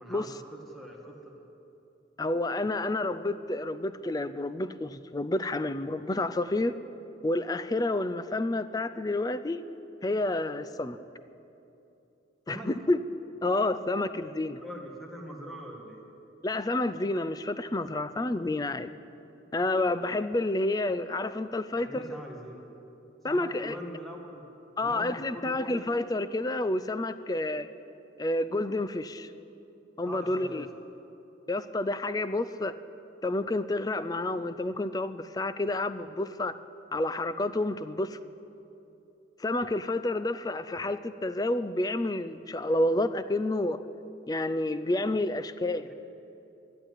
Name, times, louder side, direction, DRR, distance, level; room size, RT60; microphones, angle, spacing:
voice 1, 0.0-1.4 12.5-12.7 14.6-16.1 21.7-22.6 23.3-24.5 24.8-26.0 30.1-30.7 45.8-45.9, right 1 dB, ahead, -1 dB, 1.9 m, -43 dB
voice 2, 2.2-6.7 7.2-9.6 10.0-11.0 12.5-13.0 13.4-14.6 16.4-18.9 19.5-22.2 23.2-23.8 24.8-27.7 28.2-29.3 30.0-30.7 31.5-32.7 33.2-36.5 36.9-38.2 39.4-43.8 44.3-45.9, left 2 dB, 20° left, 13 dB, 0.4 m, -29 dB
11.5 x 11.5 x 9.8 m, 2.9 s
head